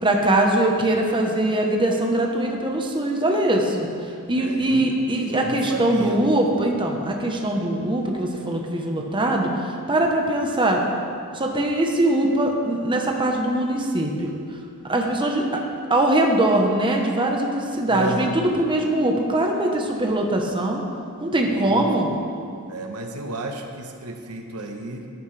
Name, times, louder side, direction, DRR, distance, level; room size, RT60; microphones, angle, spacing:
voice 1, 0.0-3.9 4.3-9.5 9.9-10.8 11.3-14.3 14.9-15.6 15.9-20.8 21.2-22.1, right 1 dB, 20° right, 1 dB, 1.0 m, -22 dB
voice 2, 4.3-6.6 17.9-18.3 21.5-22.0 22.7-25.1, right 2 dB, 80° right, 4 dB, 1.0 m, -33 dB
14.0 x 10.5 x 3.4 m, 2.4 s
head